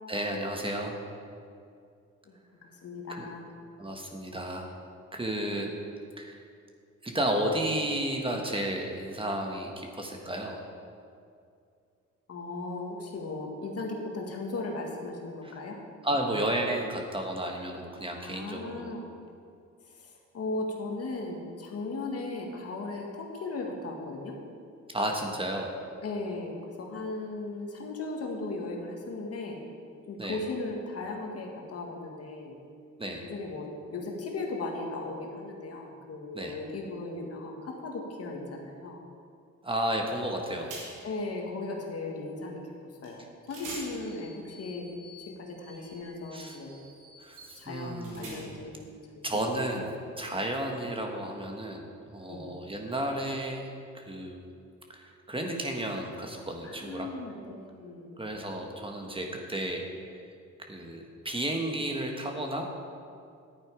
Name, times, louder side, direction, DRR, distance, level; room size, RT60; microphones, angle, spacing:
voice 1, 0.1-1.0 3.1-3.3 3.8-4.7 5.1-5.7 6.2-6.4 7.0-10.6 15.4-15.6 16.0-18.9 24.9-25.7 30.2-30.4 33.0-33.3 36.3-36.6 39.6-40.7 46.3-46.6 47.2-48.6 49.2-53.7 53.9-54.4 54.9-57.1 58.2-59.8 60.1-60.2 60.7-62.6, right 1 dB, 15° right, 1 dB, 1.4 m, -32 dB
voice 2, 2.8-3.5 12.3-15.8 18.2-19.1 20.3-24.4 26.0-29.6 30.1-32.6 33.3-39.0 41.0-42.6 43.0-44.9 45.3-46.8 47.6-49.2 52.3-52.5 56.6-58.2, left 2 dB, 50° left, 1 dB, 2.0 m, -37 dB
sound 1, 40.2-40.4 40.7-41.2 43.0-43.2 43.5-48.8, right 2 dB, 85° right, 2.7 m, -47 dB
11.0 x 8.9 x 4.9 m, 2.4 s
cardioid pair, 90°, 30 cm